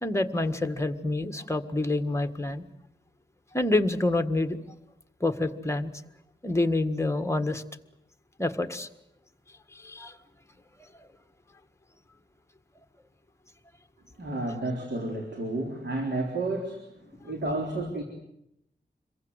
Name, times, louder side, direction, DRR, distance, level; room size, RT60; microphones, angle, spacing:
voice 1, 0.0-2.6 3.5-4.6 5.2-5.9 6.4-7.6 8.4-8.9 9.8-10.1, left 2 dB, 15° left, 7 dB, 1.6 m, -27 dB
voice 2, 14.2-16.9 17.2-18.0, right 2 dB, 75° right, 2 dB, 4.0 m, -31 dB
27.5 x 22.5 x 8.1 m, 0.81 s
wide cardioid pair, 105°, 18 cm